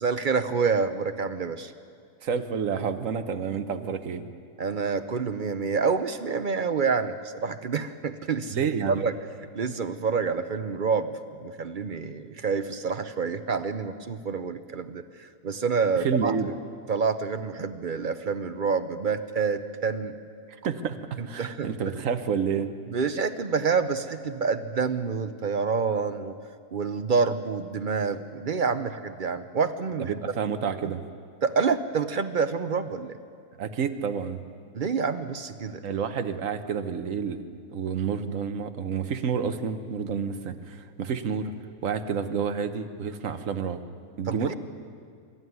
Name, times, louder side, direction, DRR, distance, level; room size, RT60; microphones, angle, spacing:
voice 1, 0.0-1.7 4.6-8.6 9.0-9.1 9.5-16.3 16.9-20.2 21.2-21.8 22.9-26.3 26.7-30.1 31.4-33.2 34.7-35.8 44.3-44.5, right 5 dB, 50° right, 10 dB, 0.6 m, -27 dB
voice 2, 2.2-4.3 8.5-9.0 16.0-16.5 20.6-21.0 21.3-22.7 30.0-31.0 33.6-34.4 35.8-37.4 37.7-41.5 41.8-43.8 44.2-44.5, right 6 dB, 65° right, 8 dB, 1.4 m, -29 dB
24.0 x 13.0 x 9.5 m, 2.2 s
omnidirectional pair, 1.5 m